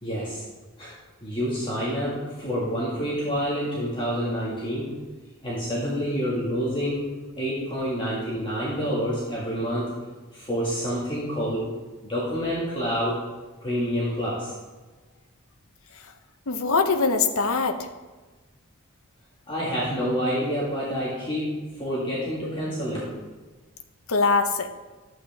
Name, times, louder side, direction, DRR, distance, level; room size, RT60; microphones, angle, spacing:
voice 1, 0.0-0.4 0.8-0.9 1.2-4.9 5.4-7.1 7.4-9.9 10.3-11.7 12.0-13.2 13.6-14.5 19.5-23.1, equal, 20° left, -7 dB, 1.9 m, -28 dB
voice 2, 16.5-17.8 24.1-24.7, left 4 dB, 75° left, 7 dB, 0.8 m, -22 dB
11.5 x 8.1 x 3.5 m, 1.3 s
head